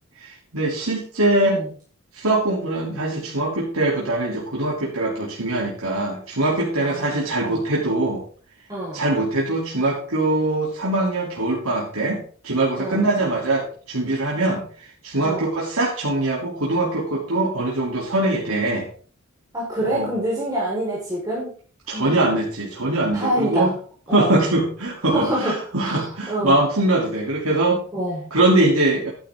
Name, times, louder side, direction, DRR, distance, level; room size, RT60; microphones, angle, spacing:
voice 1, 0.2-1.6 2.1-8.2 8.9-18.9 19.8-20.1 21.9-23.7 24.1-27.8 28.3-29.1, right 2 dB, 80° right, -4 dB, 3.1 m, -22 dB
voice 2, 6.8-7.6 8.7-9.0 12.8-13.1 15.2-15.5 19.5-21.5 21.9-22.3 23.1-23.7 24.1-24.4 25.1-26.6 27.9-28.3, right 1 dB, 15° right, -6 dB, 4.6 m, -26 dB
12.0 x 11.0 x 3.7 m, 0.42 s
head